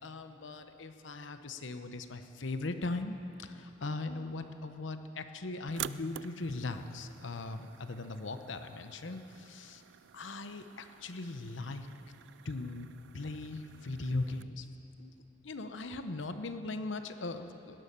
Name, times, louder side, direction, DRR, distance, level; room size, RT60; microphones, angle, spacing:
voice 1, 0.0-9.8 10.1-11.9 12.4-14.7 15.0-15.1 15.4-17.8, left 2 dB, 75° left, 8 dB, 0.9 m, -39 dB
sound 1, 5.7-14.4, right 11 dB, 65° right, 0.3 m, -49 dB
19.0 x 11.0 x 6.9 m, 3.0 s
head